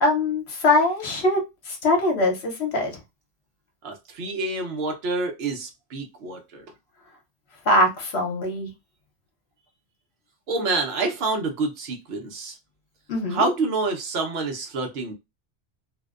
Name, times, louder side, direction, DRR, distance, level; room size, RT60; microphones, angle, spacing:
voice 1, 0.0-2.9 7.7-8.7 13.1-13.4, left 2 dB, 70° left, 1.0 m, -22 dB
voice 2, 3.8-6.6 10.5-12.6 13.3-15.1, right 3 dB, 65° right, 0.9 m, -27 dB
2.6 x 2.1 x 2.4 m
omnidirectional pair, 1.1 m